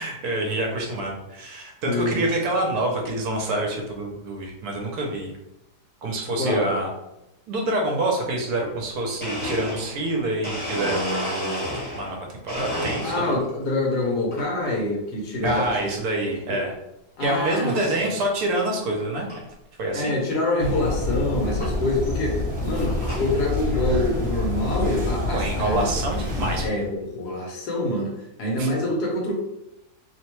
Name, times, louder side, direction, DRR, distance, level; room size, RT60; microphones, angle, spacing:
voice 1, 0.0-5.3 6.0-6.9 7.5-11.1 11.9-12.2 12.4-13.3 15.4-16.7 17.2-19.3 19.8-20.1 25.2-26.9 28.6-28.7, right 1 dB, 70° right, 0 dB, 1.1 m, -26 dB
voice 2, 1.8-2.3 6.4-6.8 13.0-15.9 16.2-16.6 17.2-18.1 19.9-25.9 26.6-28.1 28.4-29.3, left 1 dB, 80° left, -1 dB, 1.3 m, -26 dB
Domestic sounds home sounds, 9.2-12.1 12.5-13.5 14.0-14.5 15.5-15.8 16.4-16.5 17.3-17.4 17.7-18.0 18.4-18.5 18.7-18.8 19.3-19.4 20.7-20.8 21.6-21.7 22.4-23.3, equal, 5° left, 0.8 m, -31 dB
sound 1, 20.6-26.7, left 2 dB, 50° right, 0.8 m, -27 dB
3.1 x 2.1 x 2.9 m, 0.88 s
omnidirectional pair, 1.8 m